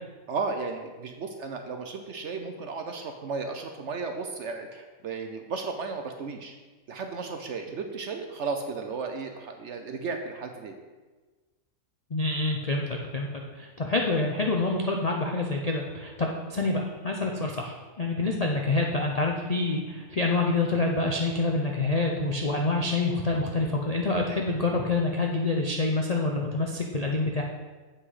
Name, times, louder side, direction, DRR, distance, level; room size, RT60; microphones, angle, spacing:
voice 1, 0.3-6.6 6.9-10.8, right 4 dB, 60° right, 5 dB, 0.8 m, -34 dB
voice 2, 12.1-13.3 13.6-27.4, left 2 dB, 60° left, 0 dB, 0.4 m, -27 dB
7.9 x 5.8 x 4.8 m, 1.3 s
omnidirectional pair, 1.7 m